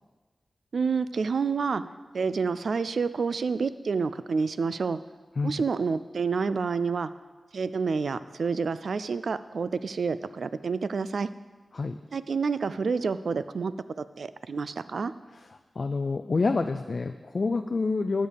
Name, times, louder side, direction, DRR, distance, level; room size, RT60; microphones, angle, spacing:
voice 1, 0.7-1.8 2.1-5.0 5.4-7.1 7.5-11.3 12.1-15.1, right 5 dB, 80° right, 14 dB, 0.3 m, -28 dB
voice 2, 15.8-18.3, left 3 dB, 55° left, 8 dB, 0.3 m, -27 dB
8.8 x 6.6 x 5.2 m, 1.3 s
wide cardioid pair, 95°, 0 cm